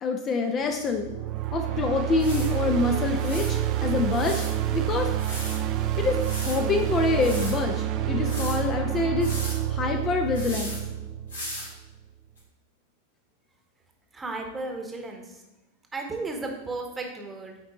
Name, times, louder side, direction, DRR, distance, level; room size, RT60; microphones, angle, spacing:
voice 1, 0.0-1.1 1.5-4.4 4.7-5.1 6.0-9.3 9.7-10.8, left 4 dB, 30° left, 4 dB, 0.6 m, -26 dB
sound 1, 0.8-11.9, right 12 dB, 35° right, 0.5 m, -28 dB
sound 2, 1.4-1.5 2.2-2.5 3.2-3.5 4.1-4.5 5.2-5.6 6.2-6.6 7.2-7.5 8.2-8.6 9.2-9.6 10.3-10.8 11.3-11.7 12.4-12.5, left 1 dB, 75° left, 2.1 m, -37 dB
voice 2, 14.1-15.4 15.9-17.7, right 3 dB, 15° right, 2 dB, 1.1 m, -34 dB
8.6 x 4.3 x 3.0 m, 0.99 s
figure-of-eight pair, 90°, 0 cm